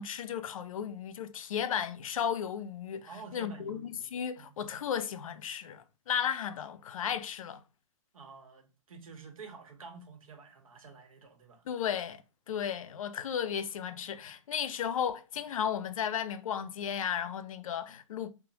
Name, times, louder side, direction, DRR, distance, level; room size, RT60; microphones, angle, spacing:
voice 1, 0.0-7.6 11.7-12.2 12.5-18.3, left 8 dB, 80° left, 0.4 m, -34 dB
voice 2, 3.1-4.1 4.4-4.5 8.1-11.6, right 4 dB, 90° right, 0.8 m, -49 dB
3.0 x 2.0 x 2.7 m
hypercardioid pair, 135°, 17 cm